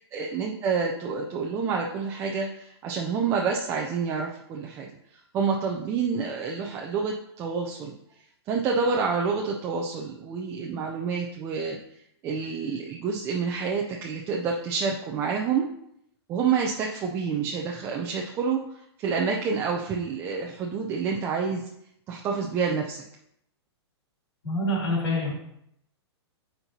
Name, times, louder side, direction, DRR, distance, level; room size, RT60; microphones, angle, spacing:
voice 1, 0.1-4.9 5.3-7.9 8.5-11.8 12.2-15.7 16.3-21.6 22.1-23.0, right 5 dB, 15° right, 0 dB, 0.4 m, -28 dB
voice 2, 24.4-25.3, left 1 dB, 70° left, -3 dB, 2.9 m, -26 dB
10.5 x 4.5 x 2.8 m, 0.75 s
hypercardioid pair, 160°, 14 cm